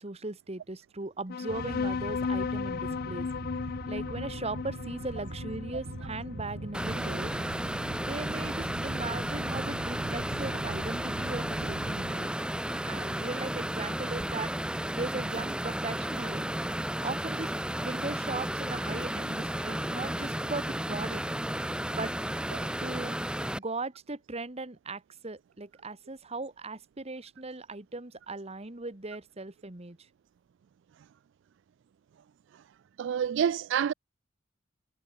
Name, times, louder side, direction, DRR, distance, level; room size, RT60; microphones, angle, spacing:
voice 1, 0.0-3.3 3.9-7.3 8.0-12.3 12.8-14.5 14.9-16.5 17.0-17.5 17.8-21.2 21.8-22.1 22.8-23.2 23.5-30.0, right 2 dB, 30° right, 1.5 m, -38 dB
sound 1, 1.3-8.2, left 5 dB, 50° left, 0.4 m, -36 dB
sound 2, 1.5-12.2, right 2 dB, 80° right, 1.5 m, -41 dB
sound 3, 6.7-23.6, right 1 dB, 5° right, 1.5 m, -33 dB
voice 2, 33.0-33.9, right 8 dB, 60° right, 0.3 m, -28 dB
head